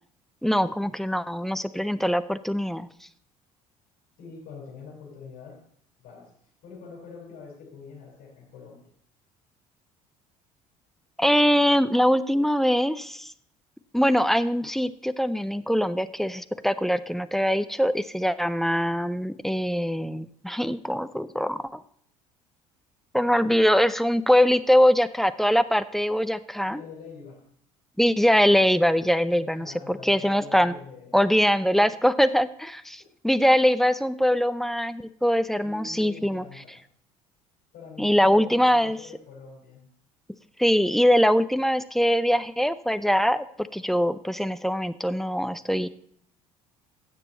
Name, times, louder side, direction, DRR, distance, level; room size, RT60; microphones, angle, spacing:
voice 1, 0.4-2.9 11.2-13.3 13.9-21.8 23.1-26.8 28.0-30.7 31.1-36.4 38.0-39.0 40.6-43.4 43.7-45.9, equal, ahead, 13 dB, 0.5 m, -22 dB
voice 2, 4.2-5.6 6.0-6.3 6.6-8.9 26.7-27.4 29.3-31.2 31.7-31.9 35.6-36.8 37.7-39.8, left 5 dB, 55° left, -2 dB, 5.0 m, -45 dB
16.0 x 6.8 x 4.2 m, 0.64 s
figure-of-eight pair, 60°, 19 cm